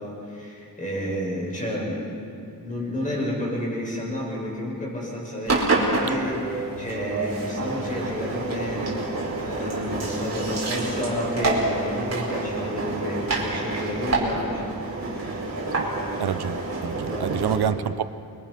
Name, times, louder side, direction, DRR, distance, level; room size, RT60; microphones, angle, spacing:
voice 1, 0.0-15.4 17.1-17.4, left 1 dB, 20° left, -4 dB, 7.9 m, -31 dB
Engine, 5.4-17.5, right 2 dB, 40° right, 4.9 m, -28 dB
voice 2, 16.2-16.6 16.8-18.0, right 9 dB, 85° right, 13 dB, 0.9 m, -26 dB
29.0 x 23.5 x 6.0 m, 2.5 s
wide cardioid pair, 145°, 38 cm